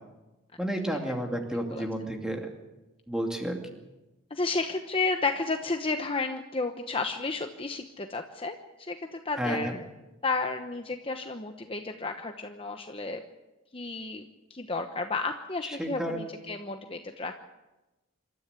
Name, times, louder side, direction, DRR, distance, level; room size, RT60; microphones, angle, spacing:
voice 1, 0.6-2.5 3.1-3.6 9.4-9.8 15.6-16.2, right 1 dB, 5° right, 2 dB, 2.5 m, -31 dB
voice 2, 4.3-9.8 10.2-13.2 13.7-14.2 14.5-17.5, left 3 dB, 25° left, 6 dB, 1.0 m, -32 dB
26.5 x 13.5 x 8.2 m, 1.1 s
head